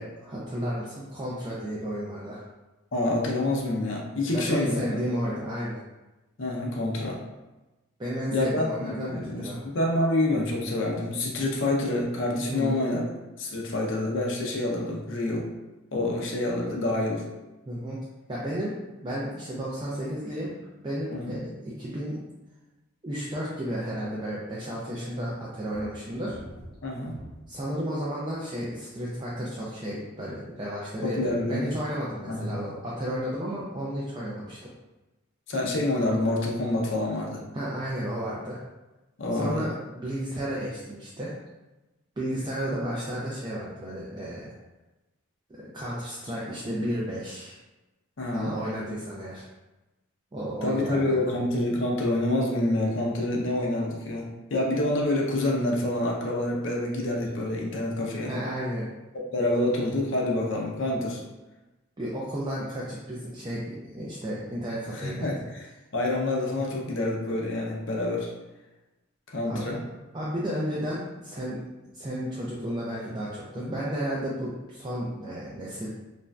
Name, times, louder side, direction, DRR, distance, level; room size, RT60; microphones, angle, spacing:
voice 1, 0.0-2.4 4.3-5.8 8.0-9.6 12.5-12.8 17.7-18.0 18.3-18.7 19.0-20.5 20.8-22.2 23.0-26.4 27.5-34.6 37.5-38.6 39.3-41.3 42.2-44.5 45.5-47.5 48.3-49.5 50.3-51.2 58.2-58.9 62.0-65.3 69.5-69.6 70.1-75.9, equal, 20° right, -7 dB, 0.3 m, -33 dB
voice 2, 2.9-5.0 6.4-7.2 8.3-13.0 13.4-15.5 15.9-17.2 21.1-21.4 26.8-27.1 31.0-31.7 32.3-32.5 35.5-37.4 39.2-39.7 48.2-48.5 50.6-58.3 59.1-61.2 64.9-65.7 65.9-68.3 69.3-69.8 73.6-73.7, left 1 dB, 60° left, -1 dB, 0.5 m, -27 dB
sound 1, 25.7-27.7 28.3-28.7, equal, 45° right, 0.9 m, -45 dB
3.0 x 2.5 x 2.2 m, 1.1 s
head